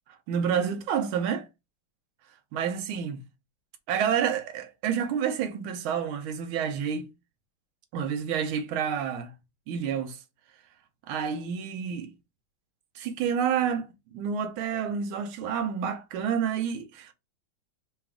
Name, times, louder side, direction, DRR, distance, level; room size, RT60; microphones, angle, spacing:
voice 1, 0.3-1.5 2.5-3.2 3.9-7.1 7.9-9.3 9.7-10.2 11.1-12.1 12.9-17.1, right 7 dB, 85° right, 1.5 m, -29 dB
4.0 x 2.3 x 3.4 m
omnidirectional pair, 2.2 m